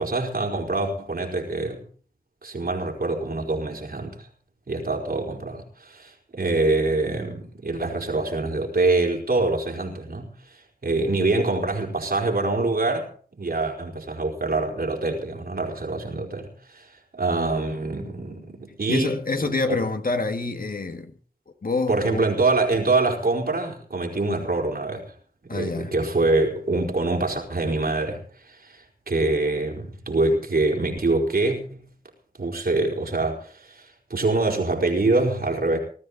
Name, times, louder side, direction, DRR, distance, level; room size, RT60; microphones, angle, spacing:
voice 1, 0.0-1.8 2.4-4.3 4.7-10.3 10.8-13.1 13.3-16.9 17.1-19.2 19.4-19.8 21.9-25.0 25.4-31.8 32.4-35.8, right 2 dB, 85° right, 4.3 m, -25 dB
voice 2, 18.9-21.1 21.6-22.2 25.5-25.9, left 3 dB, 70° left, 1.8 m, -27 dB
19.5 x 13.5 x 4.1 m
wide cardioid pair, 60°, 15 cm